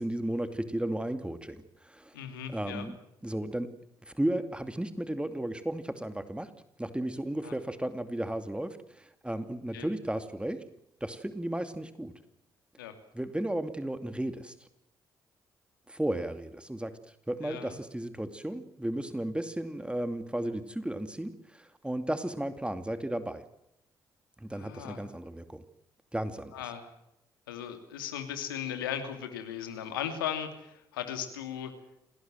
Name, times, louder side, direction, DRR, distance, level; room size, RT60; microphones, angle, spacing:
voice 1, 0.0-2.2 2.5-3.0 3.2-3.7 4.1-6.5 6.8-10.6 11.0-12.1 13.1-14.5 15.9-23.4 24.4-25.6 26.1-26.6, right 1 dB, 10° right, 10 dB, 2.5 m, -34 dB
voice 2, 2.1-2.9 7.4-7.5 9.7-9.9 12.8-12.9 17.4-17.8 24.5-25.1 26.5-26.9 27.5-31.7, left 9 dB, 90° left, 8 dB, 2.7 m, -37 dB
27.5 x 19.0 x 7.7 m, 0.81 s
hypercardioid pair, 45°, 11 cm